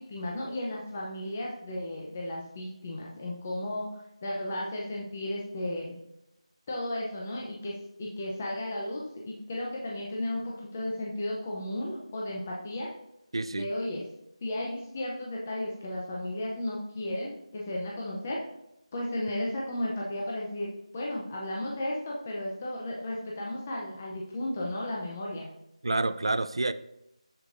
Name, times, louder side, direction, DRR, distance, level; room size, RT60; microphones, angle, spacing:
voice 1, 0.0-6.0 6.7-7.7 8.0-12.9 13.5-14.0 14.4-18.4 18.9-25.5, left 1 dB, 15° left, -3 dB, 0.6 m, -34 dB
voice 2, 13.3-13.7 25.8-26.7, right 2 dB, 50° right, 14 dB, 0.4 m, -28 dB
14.0 x 5.0 x 2.6 m, 0.85 s
figure-of-eight pair, 175°, 4 cm